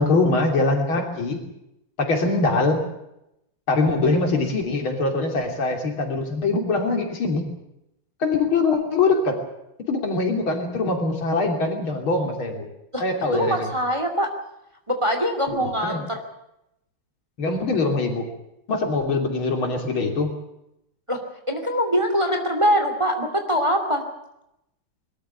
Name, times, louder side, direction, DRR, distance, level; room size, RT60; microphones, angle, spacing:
voice 1, 0.0-1.4 2.0-2.8 3.7-7.5 8.2-9.4 9.8-12.7 13.0-13.7 15.5-16.0 17.4-18.3 18.7-20.4, left 3 dB, 70° left, 3 dB, 3.9 m, -23 dB
voice 2, 13.3-14.3 14.9-16.2 21.1-21.2 21.5-24.0, equal, 15° right, 4 dB, 2.6 m, -23 dB
22.0 x 13.5 x 9.5 m, 0.84 s
omnidirectional pair, 2.3 m